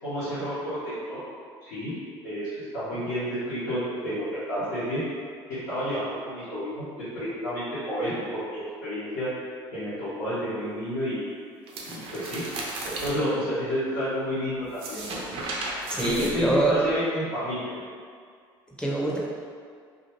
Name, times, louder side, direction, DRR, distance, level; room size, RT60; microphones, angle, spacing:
voice 1, 0.0-1.2 1.6-1.9 2.2-5.0 5.5-6.8 7.1-9.3 9.7-11.2 11.9-12.4 12.8-15.2 16.0-17.7, equal, 80° left, -15 dB, 1.1 m, -30 dB
sound 1, 11.7-13.1 14.6-16.9, right 2 dB, 60° right, 0.6 m, -35 dB
voice 2, 15.9-16.7 18.8-19.2, right 1 dB, 10° left, -4 dB, 0.7 m, -24 dB
2.7 x 2.4 x 2.9 m, 2.1 s
supercardioid pair, 75°, 11 cm